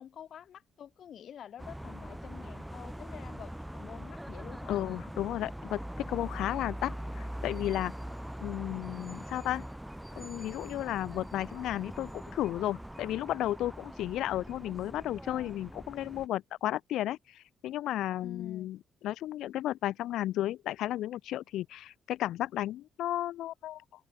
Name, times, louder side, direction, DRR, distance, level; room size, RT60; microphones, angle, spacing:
voice 1, 0.0-4.8 18.2-18.7, left 9 dB, 65° left, 1.8 m, -48 dB
sound 1, 1.6-16.3, equal, 5° right, 3.5 m, -42 dB
voice 2, 4.7-7.9 8.4-9.6 10.2-18.8 19.0-23.8, left 13 dB, 85° left, 0.5 m, -33 dB
cardioid pair, 90°, 0 cm